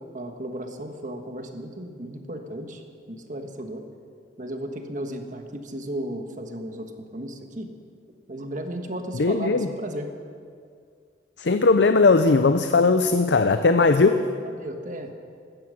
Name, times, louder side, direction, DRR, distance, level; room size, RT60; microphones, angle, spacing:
voice 1, 0.0-3.9 4.4-7.7 8.3-10.1 14.4-15.1, right 1 dB, 40° right, 5 dB, 1.4 m, -35 dB
voice 2, 9.2-9.7 11.4-14.2, left 3 dB, 65° left, 9 dB, 0.6 m, -18 dB
16.0 x 13.0 x 6.3 m, 2.2 s
head